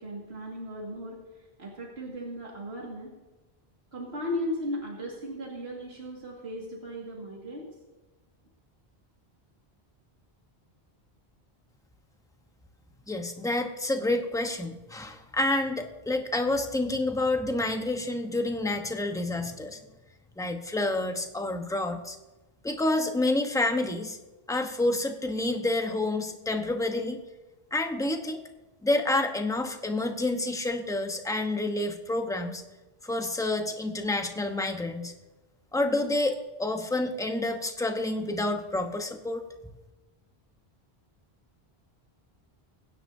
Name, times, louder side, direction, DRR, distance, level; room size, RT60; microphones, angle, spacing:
voice 1, 0.0-3.1 3.9-7.7, equal, 85° right, -3 dB, 2.3 m, -36 dB
voice 2, 13.1-19.8 20.4-22.2 22.6-24.2 24.5-27.2 27.7-28.4 28.8-32.6 33.0-35.1 35.7-39.4, left 2 dB, 5° left, 5 dB, 0.9 m, -28 dB
23.5 x 10.0 x 2.7 m, 1.1 s
omnidirectional pair, 1.0 m